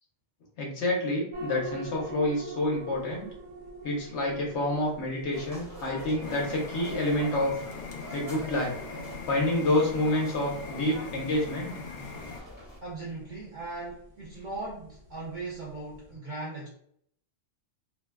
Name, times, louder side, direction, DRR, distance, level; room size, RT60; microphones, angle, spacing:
voice 1, 0.6-3.3 3.8-7.5 8.1-8.7 9.3-11.7, left 1 dB, 65° left, -2 dB, 1.0 m, -28 dB
sound 1, 1.3-16.1, right 1 dB, 70° right, 1.0 m, -46 dB
sound 2, 5.3-12.8, equal, 20° left, 0.8 m, -45 dB
sound 3, 6.2-12.4, left 4 dB, 90° left, 1.0 m, -41 dB
voice 2, 12.8-16.7, right 2 dB, 55° right, -5 dB, 0.5 m, -38 dB
2.6 x 2.2 x 2.2 m, 0.66 s
omnidirectional pair, 1.3 m